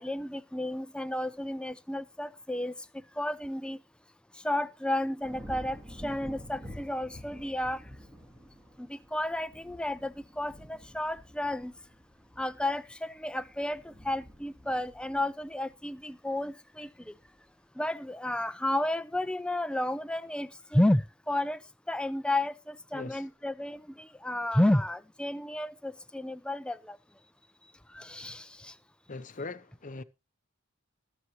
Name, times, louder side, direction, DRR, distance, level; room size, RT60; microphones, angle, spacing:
voice 1, 0.0-2.7 3.2-3.8 4.4-7.8 8.8-11.7 12.4-17.1 17.8-21.6 21.9-27.0 27.9-28.7, left 1 dB, 5° left, 0.5 m, -32 dB
sound 1, 5.2-16.5 16.9-17.4, equal, 15° right, 2.2 m, -49 dB
voice 2, 22.9-23.2 29.1-30.0, left 3 dB, 35° left, 0.7 m, -40 dB
20.0 x 7.0 x 3.1 m
head